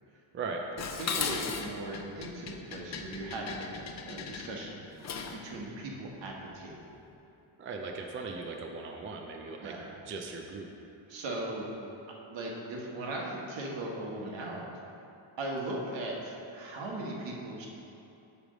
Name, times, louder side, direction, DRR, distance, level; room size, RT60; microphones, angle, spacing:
Dishes pots and pans, 0.8-5.5, left 5 dB, 35° left, 0.5 m, -37 dB
voice 1, 0.9-6.9 9.6-9.9 11.1-11.7 12.3-14.7 15.4-17.7, right 1 dB, 65° right, -1 dB, 1.4 m, -38 dB
voice 2, 7.6-9.7 10.1-10.7, right 4 dB, 30° right, 2 dB, 0.4 m, -38 dB
8.7 x 3.4 x 6.3 m, 2.7 s
cardioid pair, 145°, 47 cm